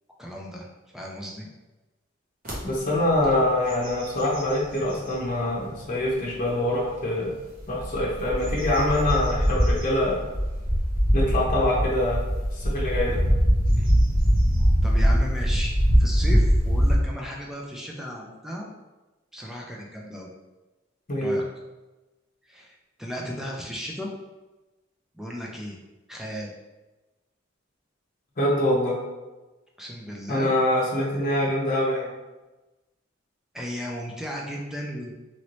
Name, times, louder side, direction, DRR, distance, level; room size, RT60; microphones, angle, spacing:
voice 1, 0.2-0.7 0.9-1.5 13.8-13.9 14.8-15.7 16.0-18.7 19.3-20.3 21.2-21.4 22.5-24.1 25.1-25.8 26.1-26.5 29.8-30.5 33.5-35.1, equal, ahead, -2 dB, 0.4 m, -35 dB
sound 1, 2.5-2.6 3.1-3.3 3.7-5.2 5.8-5.9 7.6-16.9, equal, 45° right, 1.0 m, -22 dB
voice 2, 2.6-7.3 7.7-10.2 11.1-12.2 12.5-13.2 21.1-21.4 28.4-28.9 30.3-32.1, left 1 dB, 45° left, -5 dB, 0.8 m, -24 dB
3.0 x 2.7 x 3.0 m, 1.1 s
head